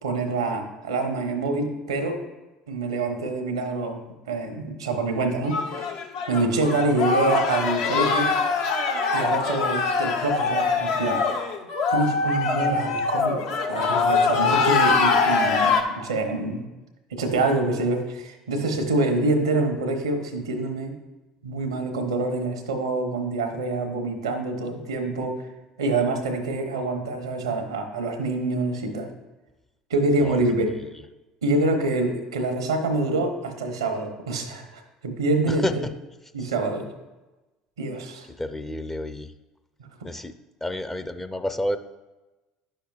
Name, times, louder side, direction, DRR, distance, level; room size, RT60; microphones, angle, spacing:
voice 1, 0.0-2.2 2.7-5.9 6.3-8.3 9.1-11.2 11.9-13.4 13.7-16.7 17.1-21.0 21.4-25.4 25.8-29.1 29.9-30.7 31.4-35.7 36.3-36.9 37.8-38.3 40.0-40.1, right 2 dB, 90° right, 5 dB, 0.9 m, -26 dB
sound 1, 5.5-15.8, left 4 dB, 70° left, 0.8 m, -23 dB
voice 2, 35.5-35.9 36.4-36.5 38.4-39.3 40.0-40.3 40.6-41.8, left 1 dB, 15° left, 9 dB, 0.5 m, -30 dB
10.0 x 6.4 x 2.4 m, 1.1 s
hypercardioid pair, 70°, 3 cm